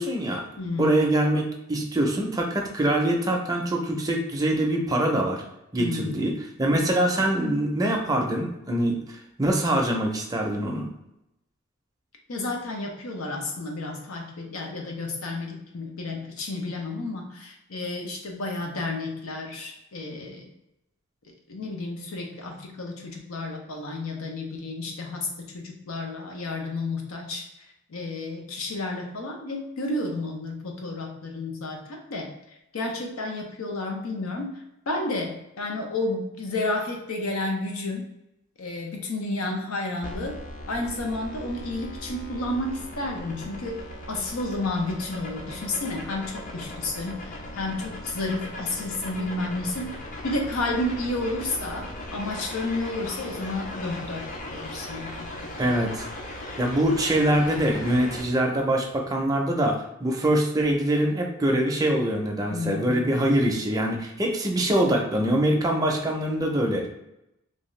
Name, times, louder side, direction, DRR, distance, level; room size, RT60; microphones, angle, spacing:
voice 1, 0.0-0.4 0.8-5.4 5.7-10.9 55.6-56.1 56.6-66.9, right 1 dB, 20° right, 0 dB, 0.5 m, -24 dB
voice 2, 0.6-1.0 5.8-6.3 12.3-20.5 21.5-25.3 25.5-27.4 27.9-32.3 32.7-38.0 38.6-40.4 40.7-50.0 50.2-55.3 55.6-55.7 62.5-63.2, left 2 dB, 90° left, 2 dB, 0.7 m, -31 dB
sound 1, 40.0-58.2, left 1 dB, 40° left, 0.5 m, -38 dB
2.7 x 2.3 x 3.1 m, 0.87 s
head